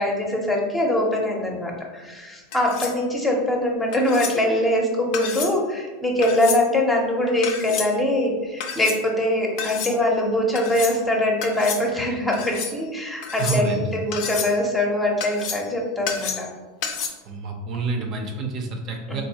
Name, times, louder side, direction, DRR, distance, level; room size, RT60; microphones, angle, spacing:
voice 1, 0.0-16.5 19.1-19.2, left 1 dB, 10° left, 0 dB, 0.6 m, -23 dB
sound 1, 2.5-3.0 3.9-4.4 5.1-5.6 6.2-6.6 7.4-7.9 8.6-9.0 9.6-9.9 10.5-11.0 11.4-11.8 12.3-12.7 13.2-13.8 14.1-14.6 15.2-15.7 16.1-16.5 16.8-17.1, left 6 dB, 60° left, 0.5 m, -30 dB
voice 2, 13.4-13.9 17.3-19.2, right 3 dB, 50° right, 2 dB, 0.5 m, -28 dB
3.6 x 2.6 x 2.8 m, 1.3 s
hypercardioid pair, 105°, 0 cm